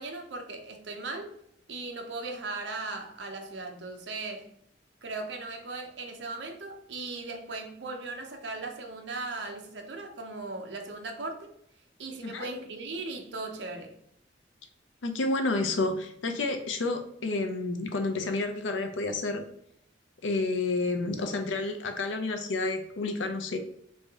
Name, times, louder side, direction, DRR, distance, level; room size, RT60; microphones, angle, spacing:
voice 1, 0.0-1.3 1.7-4.5 5.0-11.5 12.0-13.9, right 3 dB, 65° right, 4 dB, 0.6 m, -38 dB
voice 2, 15.0-19.4 20.2-23.6, left 3 dB, 80° left, 6 dB, 0.5 m, -30 dB
3.2 x 2.7 x 3.5 m, 0.73 s
head